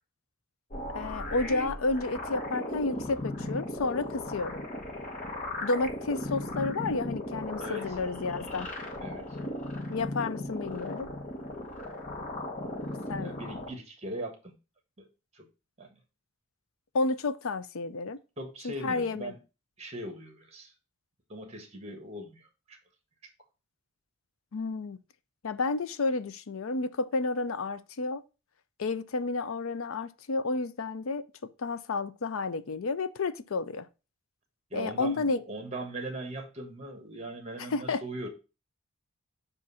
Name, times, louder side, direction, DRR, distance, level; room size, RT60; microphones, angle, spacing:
sound 1, 0.7-13.7, left 1 dB, 35° left, 1.1 m, -37 dB
voice 1, 0.9-4.6 5.6-8.7 9.9-11.1 13.1-13.4 16.9-18.2 18.6-19.3 24.5-25.0 25.4-28.2 28.8-33.9 34.7-35.4 37.6-38.0, left 3 dB, 75° left, 0.5 m, -31 dB
voice 2, 7.6-8.0 9.0-9.4 13.2-14.5 15.0-15.1 15.3-15.4 15.8-16.0 18.4-19.4 19.8-20.7 21.3-22.8 34.7-38.3, right 1 dB, 30° right, 1.3 m, -40 dB
7.5 x 2.6 x 5.5 m
head